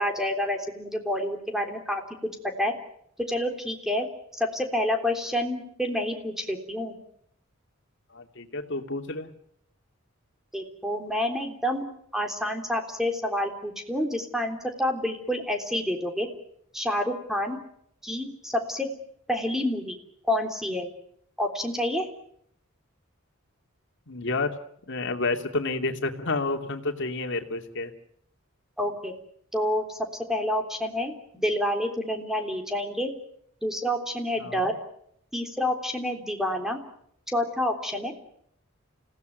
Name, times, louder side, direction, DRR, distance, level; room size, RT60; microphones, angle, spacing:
voice 1, 0.0-2.0 2.6-2.7 3.3-4.1 4.3-6.9 10.5-11.8 12.1-16.3 16.7-17.6 18.0-18.9 19.3-20.0 20.3-20.9 21.4-22.1 28.8-29.1 29.5-33.1 33.6-34.8 35.3-36.8 37.3-38.1, left 1 dB, ahead, 4 dB, 3.4 m, -28 dB
voice 2, 8.1-9.3 24.1-24.5 24.9-27.9 34.4-34.7, left 3 dB, 60° left, 5 dB, 2.7 m, -30 dB
29.5 x 17.0 x 9.4 m, 0.71 s
head